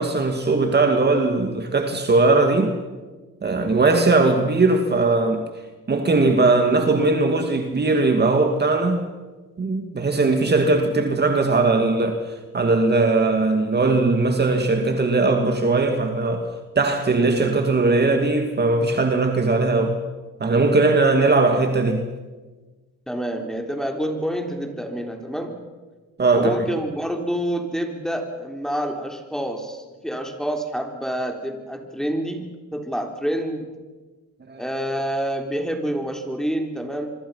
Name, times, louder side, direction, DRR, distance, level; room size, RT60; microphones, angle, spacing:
voice 1, 0.0-2.8 3.4-5.4 5.9-9.0 9.6-12.2 12.5-16.5 16.8-20.0 20.4-22.1 26.2-26.5 34.5-34.6, right 3 dB, 35° right, 2.4 m, -19 dB
voice 2, 23.1-25.6 26.3-33.7 34.6-37.1, equal, ahead, 3.8 m, -27 dB
26.0 x 24.0 x 5.7 m
cardioid pair, 90°, 30 cm